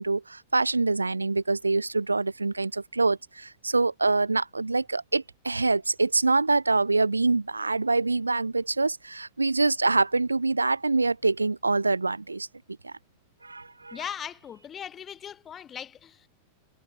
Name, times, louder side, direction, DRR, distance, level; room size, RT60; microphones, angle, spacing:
voice 1, 0.0-12.5 12.8-12.9 13.4-14.0, right 3 dB, 80° right, 0.3 m, -25 dB
voice 2, 13.9-16.3, left 9 dB, 25° left, 1.8 m, -39 dB
figure-of-eight pair, 90°, 0 cm